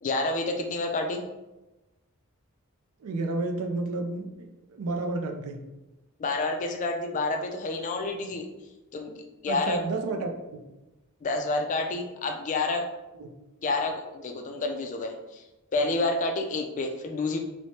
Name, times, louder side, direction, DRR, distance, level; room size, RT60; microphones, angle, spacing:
voice 1, 0.0-1.2 6.2-8.5 8.9-9.2 9.4-9.8 11.2-12.8 13.6-15.4 15.7-17.4, left 2 dB, 35° left, 4 dB, 0.3 m, -29 dB
voice 2, 3.0-5.6 9.5-10.6 13.2-13.3, right 2 dB, 75° right, 4 dB, 0.4 m, -31 dB
3.1 x 2.1 x 2.7 m, 1.0 s
head